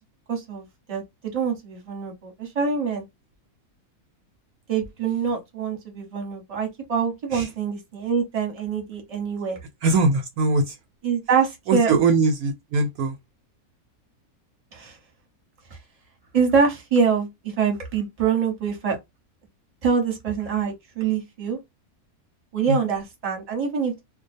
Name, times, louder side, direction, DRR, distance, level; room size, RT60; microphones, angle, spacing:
voice 1, 0.3-1.0 1.3-3.0 4.7-9.6 11.0-11.9 14.7-14.9 16.3-19.0 19.8-21.6 22.5-24.0, right 6 dB, 25° right, 0.9 m, -25 dB
voice 2, 9.8-10.7 11.7-13.1 22.7-22.8, right 3 dB, 75° right, 1.0 m, -21 dB
2.4 x 2.2 x 2.5 m
omnidirectional pair, 1.6 m